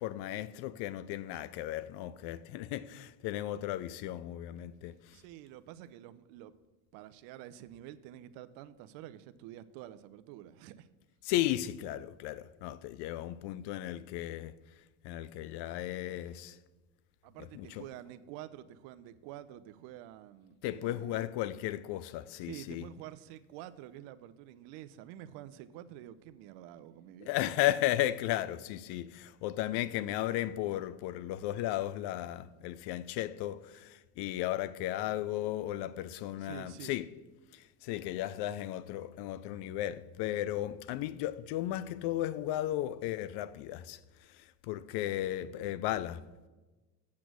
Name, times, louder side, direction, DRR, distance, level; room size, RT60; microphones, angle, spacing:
voice 1, 0.0-5.2 11.2-14.5 15.0-16.6 17.4-17.8 20.6-22.9 27.2-37.1 37.5-44.0 44.3-46.2, left 14 dB, 55° left, 0.6 m, -35 dB
voice 2, 5.1-6.5 6.9-10.9 17.2-21.2 22.4-27.4 36.4-37.0, right 12 dB, 65° right, 0.7 m, -48 dB
8.6 x 6.0 x 6.2 m
supercardioid pair, 90°, 49 cm